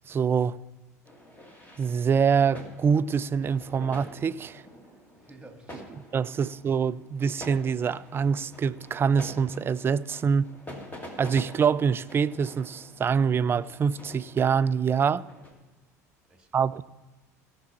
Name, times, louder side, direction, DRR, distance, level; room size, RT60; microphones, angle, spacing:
voice 1, 0.1-0.6 1.8-4.6 6.1-10.5 11.2-15.3 16.5-16.8, right 6 dB, 25° right, 0.4 m, -25 dB
sound 1, 1.1-15.5, left 1 dB, 20° left, 2.1 m, -47 dB
voice 2, 5.2-6.1 16.3-16.8, right 2 dB, 10° right, 1.8 m, -52 dB
16.5 x 6.0 x 4.3 m
figure-of-eight pair, 70°, 9 cm